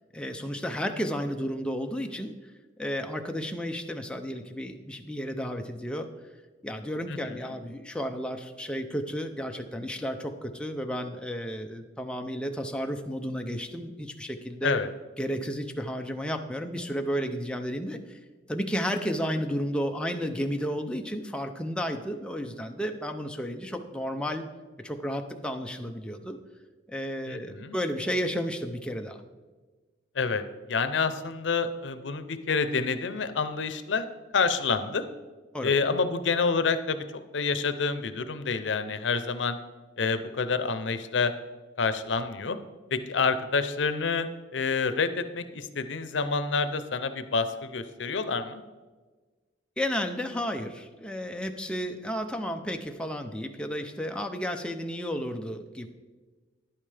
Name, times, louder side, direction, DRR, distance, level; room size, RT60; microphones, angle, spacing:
voice 1, 0.1-2.3 2.8-6.1 6.6-14.8 15.2-18.2 18.5-24.4 24.8-26.4 26.9-29.2 35.5-35.7 49.8-55.9, equal, 5° left, 4 dB, 0.5 m, -32 dB
voice 2, 7.1-7.4 14.6-14.9 27.3-27.7 30.2-30.4 30.7-34.1 34.3-35.0 35.6-39.6 40.0-41.3 41.8-42.6 42.9-44.3 44.5-48.6, left 4 dB, 85° left, 11 dB, 0.6 m, -28 dB
10.5 x 8.9 x 3.3 m, 1.3 s
head